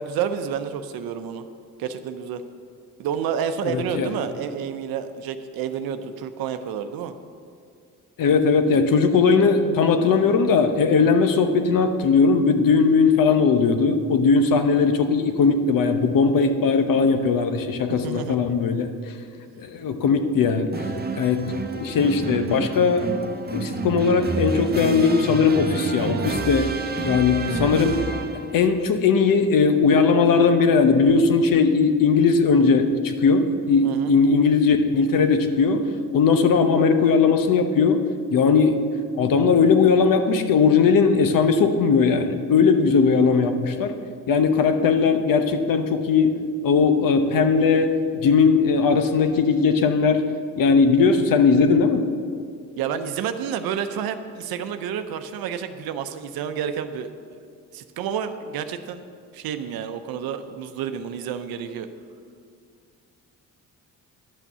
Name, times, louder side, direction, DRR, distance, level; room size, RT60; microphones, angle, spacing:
voice 1, 0.0-1.5 1.8-2.4 3.0-7.1 18.0-18.4 33.8-34.1 52.8-57.1 57.7-59.0 59.3-61.9, right 8 dB, 80° right, 9 dB, 0.7 m, -29 dB
voice 2, 3.6-4.1 8.2-18.9 19.6-20.7 21.1-21.5 21.8-23.1 23.5-26.7 27.0-28.0 28.5-35.9 36.1-38.0 38.3-38.8 39.2-44.0 44.3-46.4 46.6-50.2 50.6-52.0, left 5 dB, 65° left, 7 dB, 1.0 m, -19 dB
sound 1, 20.7-28.6, right 3 dB, 25° right, 0.9 m, -29 dB
11.0 x 6.1 x 6.8 m, 2.2 s
cardioid pair, 80°, 35 cm